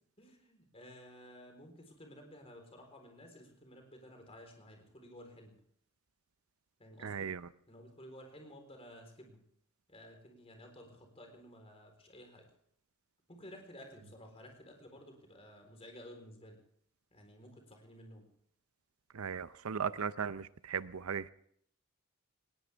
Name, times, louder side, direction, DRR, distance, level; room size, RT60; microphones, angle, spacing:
voice 1, 0.2-5.5 6.8-7.3 7.7-9.4 9.9-12.4 13.3-16.6 17.1-18.3, equal, 30° left, 4.0 m, -54 dB
voice 2, 7.0-7.4 19.1-21.3, right 6 dB, 85° right, 0.6 m, -37 dB
19.5 x 18.5 x 3.5 m
head